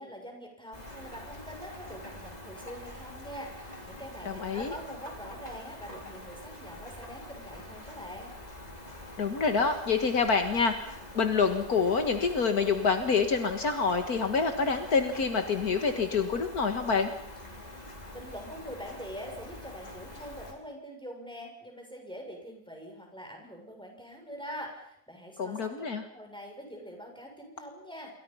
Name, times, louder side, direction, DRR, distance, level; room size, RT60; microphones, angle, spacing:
voice 1, 0.0-8.3 18.1-25.9 26.1-28.1, equal, 5° left, 2 dB, 6.6 m, -44 dB
Rain, 0.7-20.5, left 1 dB, 25° left, 4.5 m, -45 dB
voice 2, 4.3-4.7 9.2-17.1 25.4-26.0, left 5 dB, 65° left, 7 dB, 2.1 m, -27 dB
28.0 x 23.5 x 5.6 m, 0.72 s
omnidirectional pair, 1.7 m